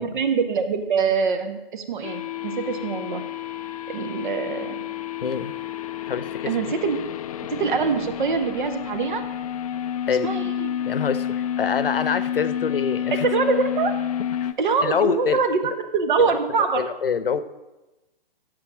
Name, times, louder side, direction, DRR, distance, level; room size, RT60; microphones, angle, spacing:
voice 1, 0.0-3.2 3.9-4.8 6.4-7.0 7.5-9.2 10.2-10.7 13.2-13.9 14.6-16.9, right 5 dB, 55° right, 9 dB, 1.6 m, -24 dB
sound 1, 2.0-14.5, left 10 dB, 40° left, 0.5 m, -29 dB
voice 2, 5.2-5.5 6.1-6.7 10.1-10.3 10.8-13.3 14.4-14.5 14.8-15.4 16.8-17.4, left 6 dB, 70° left, 14 dB, 0.9 m, -25 dB
8.5 x 7.4 x 8.9 m, 1.1 s
figure-of-eight pair, 140°, 30 cm